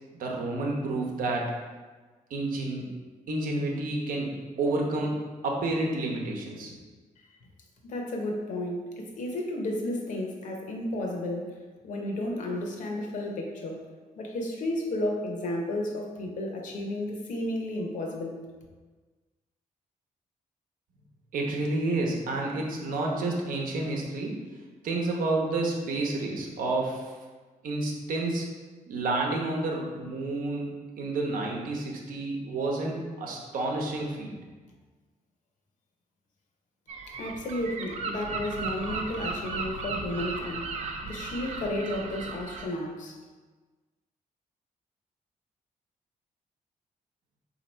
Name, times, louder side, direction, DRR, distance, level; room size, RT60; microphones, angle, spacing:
voice 1, 0.2-1.5 2.3-2.9 3.3-6.7 21.3-24.4 24.8-27.1 27.6-28.5 28.9-34.3, right 2 dB, 85° right, -1 dB, 0.9 m, -30 dB
voice 2, 7.8-11.6 11.8-13.8 14.2-18.4 37.1-43.2, left 1 dB, 65° left, 1 dB, 0.8 m, -32 dB
Gull seagull, 36.9-42.7, right 4 dB, 55° right, 0.5 m, -36 dB
4.0 x 2.8 x 4.3 m, 1.3 s
wide cardioid pair, 165°, 14 cm